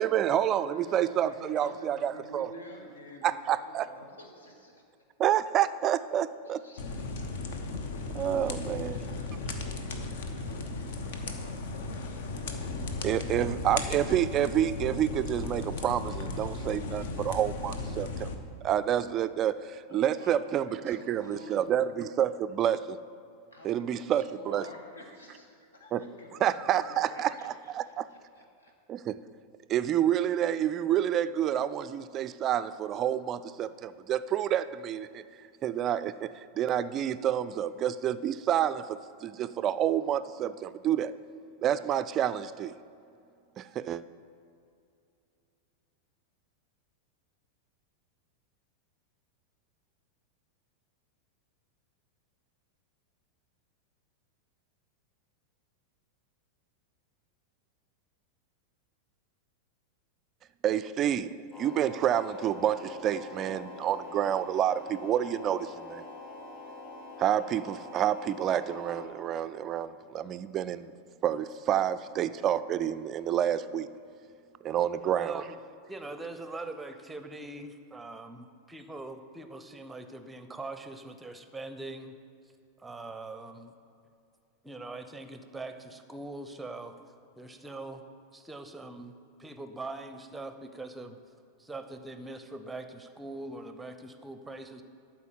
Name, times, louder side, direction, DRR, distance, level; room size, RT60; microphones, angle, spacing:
voice 1, 0.0-2.5 3.2-3.9 5.2-6.6 8.1-9.0 13.0-18.3 18.6-23.0 23.6-24.6 25.9-26.0 26.4-28.0 28.9-29.2 29.7-35.2 35.6-41.1 41.6-42.7 43.6-44.0 60.6-66.0 67.2-70.9 71.2-73.9 74.6-75.5, right 10 dB, 30° right, 14 dB, 0.4 m, -29 dB
voice 2, 0.5-5.0 6.4-7.4 8.6-12.7 19.9-21.7 23.5-28.7, equal, 70° left, 2 dB, 1.6 m, -50 dB
sound 1, 6.8-18.3, left 3 dB, 55° left, 0.9 m, -36 dB
sound 2, 61.5-69.1, left 2 dB, 20° left, 2.4 m, -45 dB
voice 3, 75.1-75.6 75.9-82.1 82.8-83.7 84.6-87.0 87.4-88.0 88.3-91.2 91.6-94.8, right 2 dB, 10° right, 9 dB, 0.7 m, -42 dB
12.5 x 4.5 x 7.3 m, 2.5 s
figure-of-eight pair, 90°, 0 cm